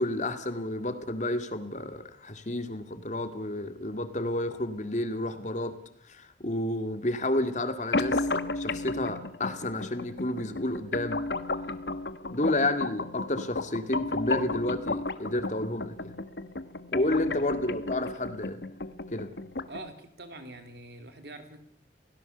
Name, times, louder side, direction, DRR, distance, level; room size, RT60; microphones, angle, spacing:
voice 1, 0.0-5.8 6.0-8.3 8.5-11.2 12.3-16.1 16.9-18.6 19.1-19.3, left 1 dB, 45° left, 9 dB, 2.2 m, -30 dB
sound 1, 7.9-19.9, left 2 dB, 70° left, 1.3 m, -33 dB
voice 2, 17.0-17.4 19.7-21.6, right 2 dB, 65° right, 7 dB, 3.3 m, -45 dB
27.5 x 17.5 x 6.8 m, 0.63 s
head